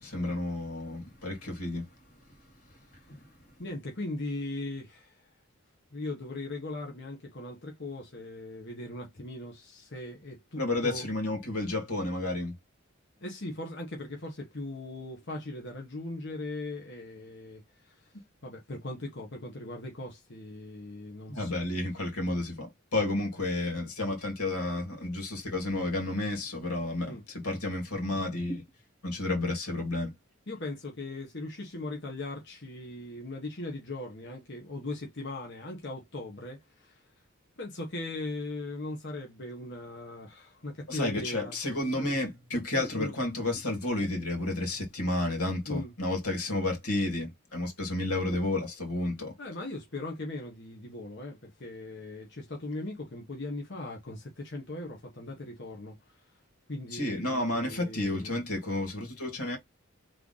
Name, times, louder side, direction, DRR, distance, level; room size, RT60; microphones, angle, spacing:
voice 1, 0.0-1.9 3.1-3.2 10.6-12.5 21.3-28.6 29.0-30.1 40.9-49.3 56.9-59.6, left 2 dB, 85° left, 2.3 m, -31 dB
voice 2, 3.6-5.2 5.9-11.1 13.2-18.1 18.4-21.6 27.1-27.2 30.5-37.0 37.6-41.5 41.9-42.2 42.7-43.1 45.7-45.9 49.4-56.2 56.7-58.4, left 2 dB, 50° left, 1.2 m, -39 dB
3.7 x 3.3 x 3.9 m
head